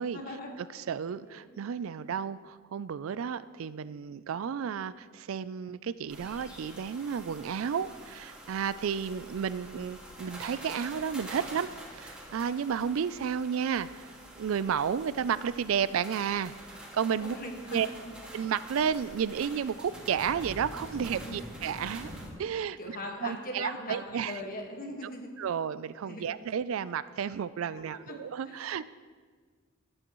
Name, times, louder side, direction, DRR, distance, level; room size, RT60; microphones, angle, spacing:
voice 1, 0.1-0.5 1.2-1.6 4.3-4.5 17.2-17.8 18.0-18.1 21.2-21.5 22.8-25.3 26.1-26.4 27.8-28.2 28.4-28.9, left 1 dB, 45° left, 2 dB, 1.6 m, -41 dB
voice 2, 0.7-14.1 14.4-17.4 17.7-17.9 18.3-22.1 22.4-22.8 23.2-24.3 25.4-28.9, right 7 dB, 75° right, 16 dB, 0.4 m, -32 dB
sound 1, 6.1-22.3, right 1 dB, 5° right, 2.0 m, -46 dB
18.0 x 8.7 x 3.1 m, 1.6 s
head